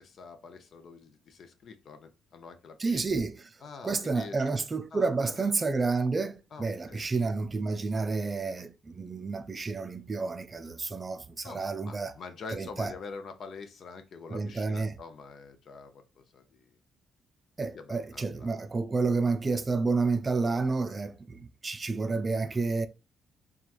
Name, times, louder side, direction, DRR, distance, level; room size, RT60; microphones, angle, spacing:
voice 1, 0.0-3.0 3.6-4.5 4.9-5.5 6.5-7.1 11.4-16.6 17.7-18.7, left 4 dB, 60° left, 0.6 m, -46 dB
voice 2, 2.8-3.5 3.8-12.1 12.5-12.9 14.3-15.0 17.6-22.9, right 4 dB, 30° right, 0.4 m, -30 dB
3.0 x 2.3 x 2.4 m
cardioid pair, 90°, 0 cm